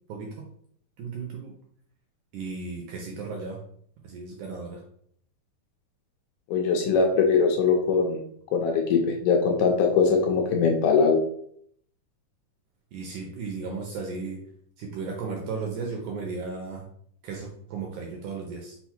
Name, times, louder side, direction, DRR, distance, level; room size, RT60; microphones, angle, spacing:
voice 1, 1.0-1.5 2.3-3.6 4.0-4.8 12.9-14.4 14.8-16.9 17.2-18.7, right 4 dB, 75° right, 1 dB, 1.8 m, -35 dB
voice 2, 6.5-8.2 8.5-11.2, left 5 dB, 75° left, 1 dB, 2.0 m, -21 dB
5.6 x 2.0 x 4.3 m, 0.65 s
omnidirectional pair, 4.1 m